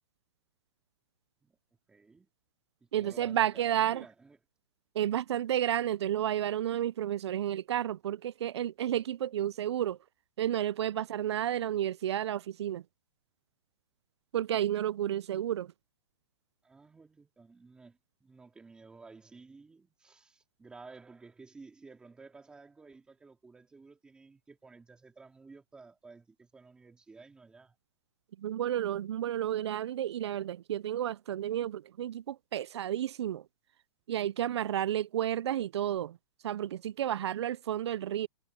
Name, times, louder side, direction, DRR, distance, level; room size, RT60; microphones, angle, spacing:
voice 1, 1.9-2.3 2.8-4.4 16.6-27.8, right 4 dB, 5° right, 2.7 m, -54 dB
voice 2, 2.9-4.0 5.0-10.0 10.4-12.8 14.3-15.7 28.4-33.4 34.1-36.2 36.4-38.3, right 11 dB, 90° right, 0.4 m, -31 dB
hypercardioid pair, 170°, 14 cm